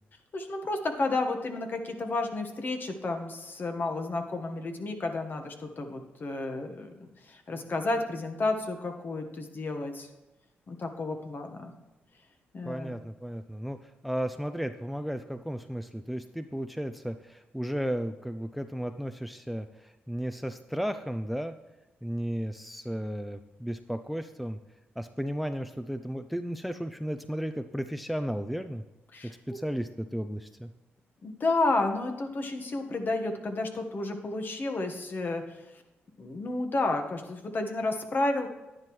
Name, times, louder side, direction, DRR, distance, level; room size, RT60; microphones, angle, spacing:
voice 1, 0.3-6.9 7.3-10.1 10.7-11.7 12.5-13.0 29.1-29.3 31.2-35.6 36.2-38.5, left 2 dB, 45° left, 5 dB, 1.4 m, -31 dB
voice 2, 12.6-21.5 22.0-24.6 25.0-28.8 29.2-30.7, equal, ahead, 9 dB, 0.5 m, -34 dB
10.5 x 10.5 x 3.2 m, 1.0 s
cardioid pair, 65°, 5 cm